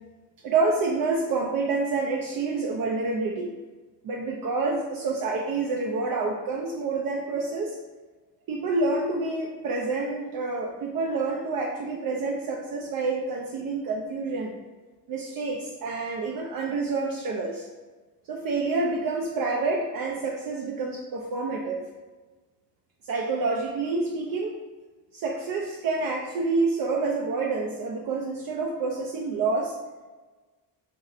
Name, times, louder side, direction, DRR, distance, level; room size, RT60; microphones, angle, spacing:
voice 1, 0.4-3.5 4.0-7.8 8.5-14.5 15.1-17.7 18.3-21.8 23.0-24.6 25.1-29.8, right 3 dB, 60° right, -1 dB, 0.5 m, -28 dB
3.1 x 2.6 x 2.4 m, 1.2 s
cardioid pair, 95°, 40 cm